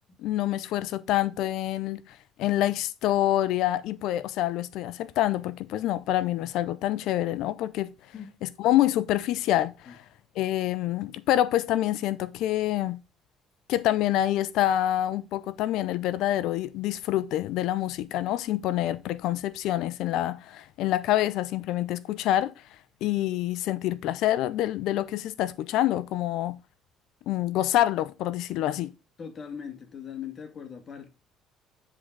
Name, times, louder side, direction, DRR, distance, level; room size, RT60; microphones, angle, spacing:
voice 1, 0.2-7.9 8.4-10.0 10.4-13.0 13.7-22.5 23.0-26.5 27.3-28.9, left 13 dB, 75° left, 0.5 m, -26 dB
voice 2, 29.2-31.1, left 7 dB, 40° left, 1.8 m, -40 dB
9.7 x 3.9 x 4.6 m
cardioid pair, 90°, 0 cm